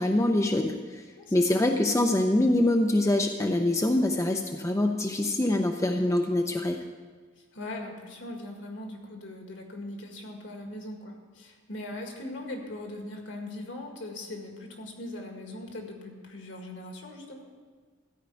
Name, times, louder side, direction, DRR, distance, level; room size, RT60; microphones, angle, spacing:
voice 1, 0.0-1.0 1.3-6.8, left 1 dB, 15° left, 3 dB, 0.5 m, -24 dB
voice 2, 1.2-1.7 7.5-17.4, left 1 dB, 65° left, 2 dB, 1.9 m, -40 dB
13.5 x 5.1 x 9.0 m, 1.5 s
head